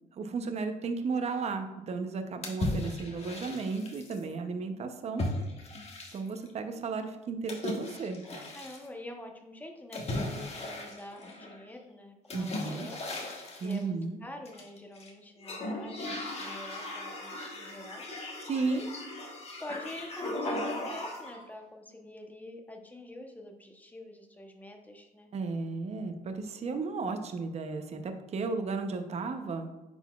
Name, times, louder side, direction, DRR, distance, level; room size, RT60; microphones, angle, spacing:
voice 1, 0.1-5.3 6.1-8.2 12.3-12.9 13.6-14.2 18.4-18.8 25.3-29.7, right 4 dB, 40° right, 7 dB, 0.7 m, -34 dB
sound 1, 2.4-4.2 5.2-6.5 7.5-8.9 9.9-11.6 12.3-13.8 14.5-15.1 15.4-21.4, left 1 dB, 35° left, 1.3 m, -37 dB
voice 2, 8.5-13.1 13.5-18.0 18.6-18.9 19.6-25.3, left 1 dB, 10° left, 3 dB, 0.9 m, -46 dB
9.7 x 4.0 x 2.4 m, 1.1 s
cardioid pair, 110°, 17 cm